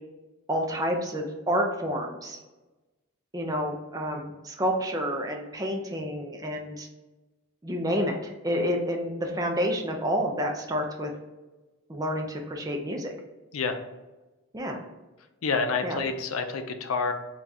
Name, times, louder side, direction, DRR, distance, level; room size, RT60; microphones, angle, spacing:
voice 1, 0.5-2.4 3.3-6.9 7.6-11.1 11.9-13.1 14.5-14.8 15.8-16.0, equal, 15° right, 2 dB, 0.5 m, -29 dB
voice 2, 15.4-17.1, left 4 dB, 80° left, 7 dB, 0.5 m, -28 dB
3.6 x 2.3 x 4.1 m, 1.1 s
head